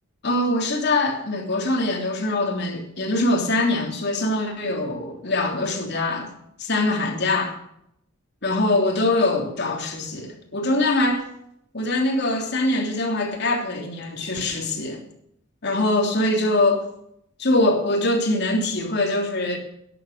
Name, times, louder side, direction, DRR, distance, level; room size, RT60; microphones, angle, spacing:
voice 1, 0.2-6.3 6.6-7.5 8.4-11.3 11.7-15.0 15.6-16.8 17.4-19.6, left 2 dB, 55° left, 3.2 m, -23 dB
12.5 x 11.0 x 6.6 m
head